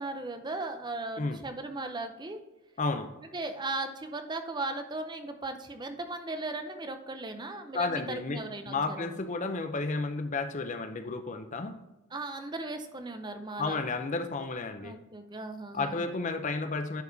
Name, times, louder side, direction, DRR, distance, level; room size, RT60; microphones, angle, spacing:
voice 1, 0.0-2.4 3.3-9.1 12.1-13.8 14.8-16.0, right 2 dB, 20° right, 6 dB, 0.6 m, -37 dB
voice 2, 2.8-3.1 7.7-8.4 8.7-11.7 13.6-14.9 15.7-17.0, left 3 dB, 35° left, 8 dB, 0.5 m, -32 dB
10.5 x 4.7 x 2.7 m, 1.0 s
head